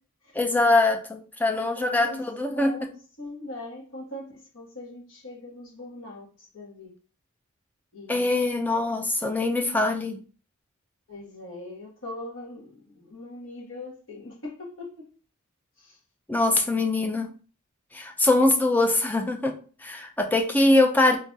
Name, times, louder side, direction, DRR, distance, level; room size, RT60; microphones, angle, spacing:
voice 1, 0.3-2.9 8.1-10.2 16.3-17.3 17.9-21.2, left 2 dB, 10° left, 0.3 m, -23 dB
voice 2, 1.5-2.2 2.5-2.9 3.2-6.9 7.9-8.4 11.1-15.1 15.8-16.0 16.5-16.7, left 2 dB, 65° left, 1.4 m, -41 dB
3.0 x 2.4 x 3.9 m
head